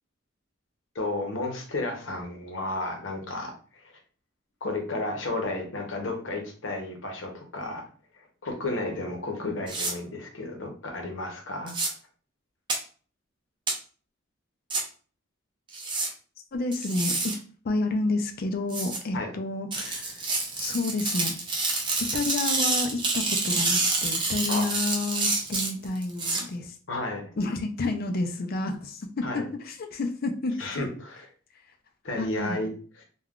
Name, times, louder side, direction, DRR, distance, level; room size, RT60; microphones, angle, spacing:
voice 1, 0.9-3.9 4.6-7.9 8.1-11.7 19.1-19.3 24.5-24.7 26.9-27.3 29.2-29.5 30.6-31.3 32.0-33.0, left 2 dB, 80° left, 3 dB, 0.8 m, -33 dB
sound 1, 9.7-9.9 11.7-11.9 12.7-12.8 13.7-13.8 14.7-14.8 15.7-16.1 16.7-17.3 18.7-19.0 19.7-26.4, right 3 dB, 25° right, 0.6 m, -28 dB
voice 2, 16.5-17.3 17.6-20.3 20.6-21.3 22.0-26.8 27.4-30.7 32.2-32.6, left 2 dB, 50° left, 5 dB, 0.4 m, -30 dB
3.5 x 2.3 x 2.3 m, 0.41 s
head